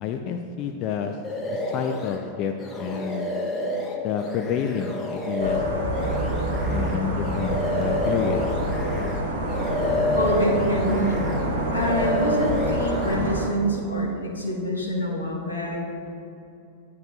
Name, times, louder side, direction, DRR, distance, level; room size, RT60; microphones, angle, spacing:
voice 1, 0.0-1.2 1.5-3.3 4.0-5.6 6.7-8.4, left 7 dB, 40° left, 5 dB, 0.3 m, -29 dB
sound 1, 1.2-2.2 2.6-9.2 9.5-11.5 11.7-13.2, left 1 dB, 20° left, 0.8 m, -28 dB
sound 2, 5.4-13.4, right 1 dB, 65° right, 1.3 m, -27 dB
voice 2, 10.2-11.2 11.7-15.8, equal, 80° left, -3 dB, 1.1 m, -26 dB
10.5 x 4.7 x 2.4 m, 2.7 s
figure-of-eight pair, 90°, 0 cm